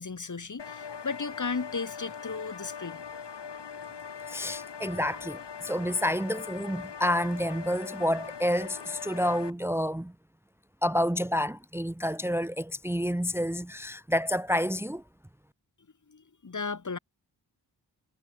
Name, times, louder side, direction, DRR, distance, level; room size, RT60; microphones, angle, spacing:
voice 1, 0.0-3.0 16.1-17.0, left 4 dB, 45° left, 2.1 m, -35 dB
sound 1, 0.6-9.5, left 6 dB, 85° left, 2.8 m, -41 dB
voice 2, 4.3-10.1 10.8-15.0, equal, 5° right, 0.8 m, -29 dB
wide cardioid pair, 80°, 40 cm